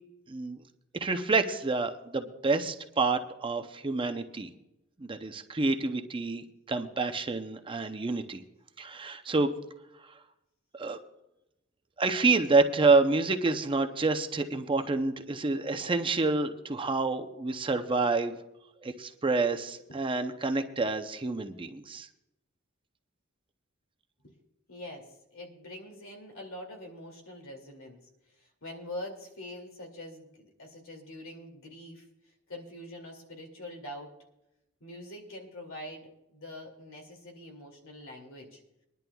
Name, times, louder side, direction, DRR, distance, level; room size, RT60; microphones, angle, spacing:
voice 1, 0.3-0.6 1.0-4.5 5.0-8.4 8.8-9.5 10.8-11.0 12.0-18.4 18.8-22.1, right 3 dB, 25° right, 7 dB, 0.6 m, -28 dB
voice 2, 24.7-28.0 28.4-32.1 32.5-34.1 34.8-38.6, left 1 dB, 80° left, 2 dB, 2.4 m, -44 dB
23.5 x 11.0 x 2.3 m, 0.91 s
head